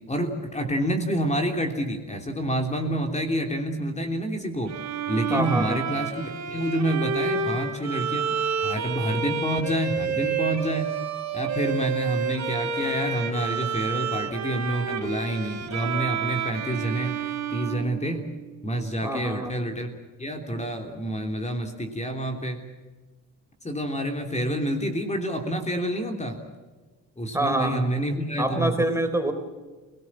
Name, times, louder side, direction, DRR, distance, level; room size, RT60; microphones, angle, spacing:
voice 1, 0.1-4.7 5.1-8.3 8.6-10.9 11.3-18.2 18.6-19.9 20.2-22.6 23.6-26.4 27.2-28.7, right 1 dB, 20° left, 4 dB, 3.4 m, -28 dB
Bowed string instrument, 4.7-18.6, right 6 dB, 55° right, 3.5 m, -29 dB
voice 2, 5.3-5.8 19.0-19.5 27.3-27.8 28.4-29.3, right 1 dB, 10° right, 6 dB, 3.7 m, -25 dB
29.0 x 18.5 x 7.5 m, 1.3 s
cardioid pair, 90°, 32 cm